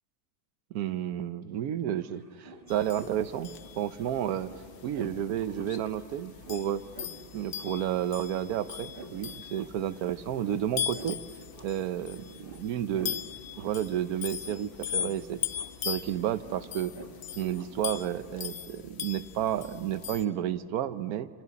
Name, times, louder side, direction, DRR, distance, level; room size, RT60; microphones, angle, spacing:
voice 1, 0.7-3.5 3.8-4.5 4.8-6.8 7.3-11.2 11.6-13.2 13.6-15.4 15.8-16.9 17.4-21.3, right 11 dB, 75° right, 14 dB, 1.2 m, -31 dB
sound 1, 1.4-1.5 1.7-18.5, right 2 dB, 40° right, 1.5 m, -51 dB
sound 2, 2.7-20.3, left 9 dB, 55° left, 0.9 m, -40 dB
29.0 x 27.5 x 4.1 m, 2.3 s
omnidirectional pair, 1.6 m